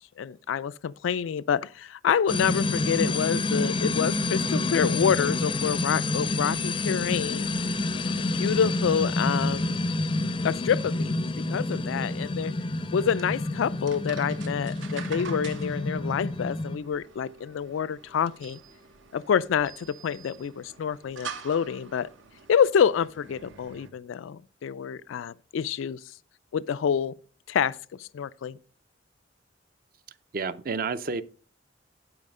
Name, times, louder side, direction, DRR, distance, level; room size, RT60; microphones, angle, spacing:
voice 1, 0.2-7.5 8.3-9.9 10.4-11.1 11.5-12.5 12.9-18.6 19.1-22.1 22.5-26.0 26.5-27.1 27.5-28.6, left 7 dB, 90° left, 0.4 m, -27 dB
sound 1, 2.3-16.8, left 2 dB, 25° left, 0.4 m, -28 dB
sound 2, 13.0-23.9, right 5 dB, 85° right, 1.1 m, -46 dB
voice 2, 30.3-31.2, right 4 dB, 50° right, 0.5 m, -30 dB
11.0 x 4.9 x 5.3 m
head